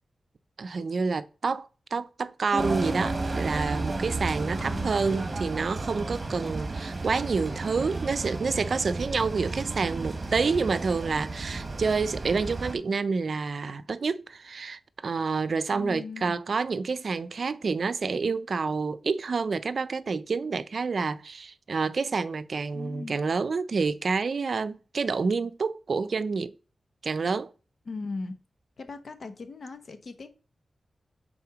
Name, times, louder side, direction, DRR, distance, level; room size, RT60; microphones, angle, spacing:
voice 1, 0.6-26.5 27.0-27.5, right 4 dB, 65° right, 0.5 m, -28 dB
sound 1, 2.5-6.4, equal, 5° left, 0.4 m, -38 dB
sound 2, 2.6-12.8, right 3 dB, 40° right, 1.2 m, -33 dB
voice 2, 4.6-5.0 15.7-16.4 22.7-23.2 27.9-28.3 28.8-30.3, left 3 dB, 65° left, 0.9 m, -38 dB
5.7 x 4.2 x 4.9 m
wide cardioid pair, 75°, 0 cm